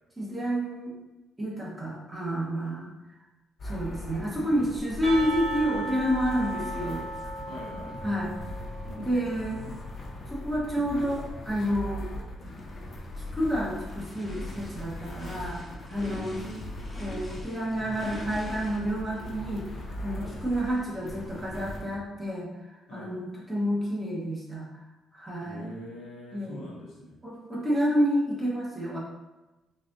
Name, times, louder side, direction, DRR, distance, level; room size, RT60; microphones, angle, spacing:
voice 1, 0.2-0.9 1.4-2.9 3.6-7.0 8.0-8.3 9.0-9.7 10.3-12.0 13.3-15.6 15.9-16.4 17.0-19.7 20.0-22.5 22.9-24.6 25.1-25.7 26.3-26.7 27.2-29.0, equal, 15° right, -5 dB, 1.1 m, -29 dB
sound 1, 3.6-22.0, left 1 dB, 55° left, 0.6 m, -39 dB
Percussion / Church bell, 5.0-9.6, right 1 dB, 55° right, 1.4 m, -37 dB
voice 2, 7.4-8.0 8.8-9.1 15.9-16.6 20.1-20.3 22.9-23.1 25.4-27.2, equal, 85° left, -4 dB, 0.9 m, -43 dB
Race car auto racing / Idling / Accelerating revving vroom, 12.4-21.8, left 1 dB, 25° left, 0.9 m, -47 dB
4.1 x 2.5 x 2.6 m, 1.1 s
cardioid pair, 90°, 0 cm